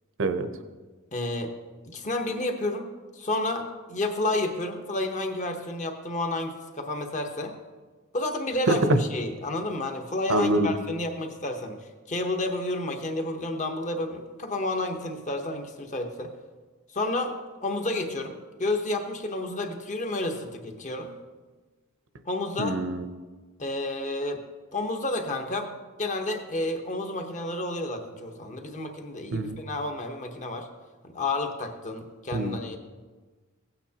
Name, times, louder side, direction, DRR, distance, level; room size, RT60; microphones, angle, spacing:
voice 1, 1.1-1.5 1.9-2.9 3.1-7.5 8.1-11.8 12.1-16.3 16.9-18.3 18.6-21.1 22.2-22.8 23.6-24.4 24.7-25.7 26.0-30.7 31.1-32.8, left 2 dB, 35° left, 4 dB, 1.0 m, -30 dB
voice 2, 8.7-9.0 10.3-10.7 22.6-23.1 29.3-29.5 32.3-32.8, right 1 dB, 65° right, 9 dB, 0.8 m, -24 dB
16.0 x 9.0 x 2.9 m, 1.4 s
head